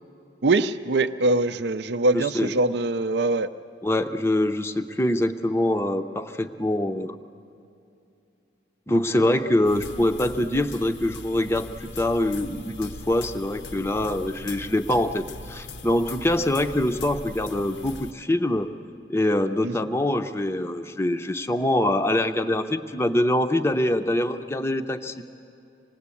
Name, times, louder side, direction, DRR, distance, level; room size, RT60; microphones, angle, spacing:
voice 1, 0.4-3.5 19.6-19.7, right 2 dB, 65° right, 9 dB, 0.6 m, -23 dB
voice 2, 2.1-2.5 3.8-7.2 8.9-18.7 19.1-25.1, left 1 dB, 15° left, 6 dB, 0.6 m, -24 dB
sound 1, 9.6-18.1, left 2 dB, 75° left, 0.9 m, -40 dB
26.5 x 19.5 x 8.4 m, 2.7 s
head